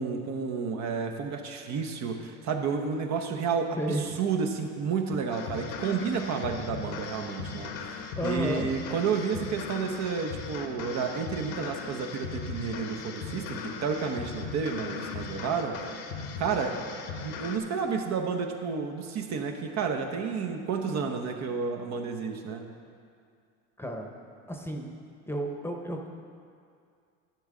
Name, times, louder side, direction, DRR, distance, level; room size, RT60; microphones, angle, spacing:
voice 1, 0.0-15.8 16.4-16.8 17.2-22.6, right 5 dB, 50° right, 3 dB, 1.0 m, -31 dB
sound 1, 5.3-17.6, left 5 dB, 75° left, 1.1 m, -38 dB
voice 2, 8.2-8.7 23.8-24.1 24.5-24.9 25.3-26.1, equal, 5° left, 2 dB, 0.9 m, -32 dB
11.5 x 7.2 x 3.8 m, 2.3 s
supercardioid pair, 95°, 35 cm